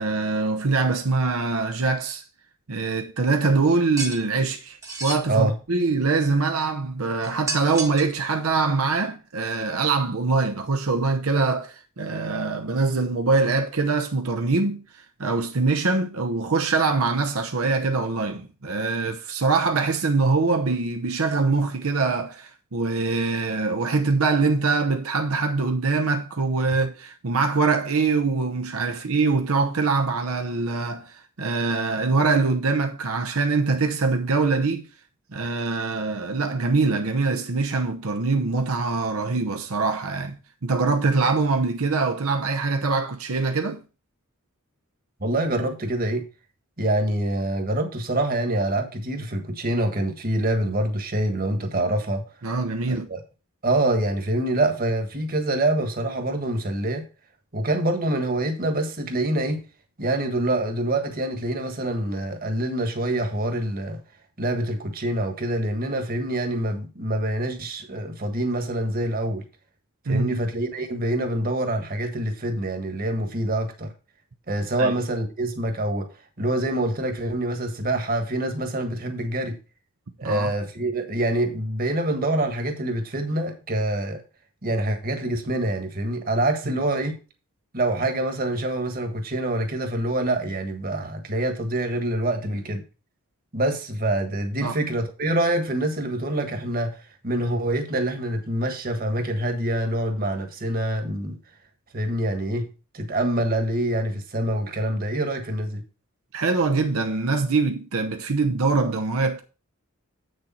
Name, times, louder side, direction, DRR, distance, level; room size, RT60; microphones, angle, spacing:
voice 1, 0.0-2.2 2.7-34.9 35.3-40.4 40.6-43.8 52.4-53.1 70.1-70.4 74.8-74.9 80.2-80.5 94.6-94.8 106.3-109.4, right 3 dB, 80° right, 0.8 m, -23 dB
sound 1, 4.0-4.2 4.8-5.2 7.2-8.2, right 3 dB, 15° right, 1.1 m, -31 dB
voice 2, 45.2-46.3 46.8-52.2 52.9-53.2 53.6-57.1 57.5-59.6 60.0-64.0 64.4-69.4 70.1-73.9 74.5-76.1 76.4-79.6 80.2-84.2 84.6-87.2 87.7-92.8 93.5-97.0 97.2-101.4 101.9-102.7 102.9-105.8, right 1 dB, 40° right, 1.5 m, -25 dB
8.0 x 6.6 x 4.3 m
head